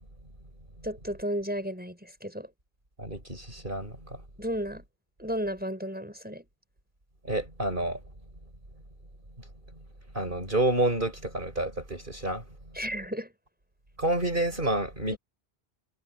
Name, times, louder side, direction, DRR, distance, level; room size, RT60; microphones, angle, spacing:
voice 1, 0.8-2.5 4.4-4.8 5.2-6.4 12.7-13.3, equal, 10° right, 5.8 m, -33 dB
voice 2, 3.0-3.9 7.2-8.0 10.1-12.4 14.0-15.2, right 2 dB, 55° right, 6.2 m, -28 dB
omnidirectional pair, 1.1 m